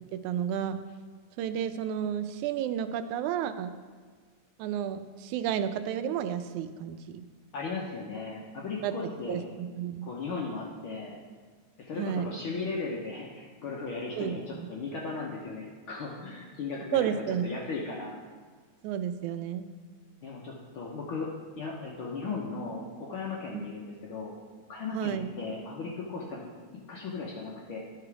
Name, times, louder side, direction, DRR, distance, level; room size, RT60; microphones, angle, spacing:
voice 1, 0.1-0.8 1.4-3.7 4.6-7.2 8.8-8.9 9.3-10.1 12.0-12.4 14.2-14.7 16.9-17.4 18.8-19.7 23.5-23.6 24.9-25.3, right 9 dB, 90° right, 10 dB, 2.0 m, -31 dB
voice 2, 7.5-9.5 10.0-11.2 11.8-18.1 20.2-21.3 21.6-24.4 24.7-26.5 26.9-27.8, left 4 dB, 70° left, -3 dB, 1.3 m, -36 dB
11.5 x 5.0 x 4.7 m, 1.5 s
omnidirectional pair, 3.4 m